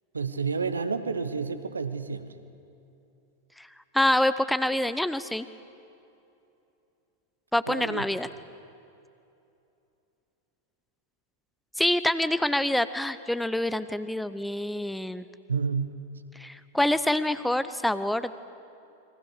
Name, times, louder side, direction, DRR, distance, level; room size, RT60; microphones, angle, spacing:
voice 1, 0.1-2.3 7.7-8.0 15.5-15.9, right 5 dB, 75° right, 11 dB, 1.4 m, -30 dB
voice 2, 3.9-5.5 7.5-8.3 11.8-15.2 16.4-18.3, left 1 dB, 5° left, 13 dB, 0.8 m, -26 dB
29.5 x 23.0 x 6.7 m, 2.7 s
figure-of-eight pair, 90°, 0 cm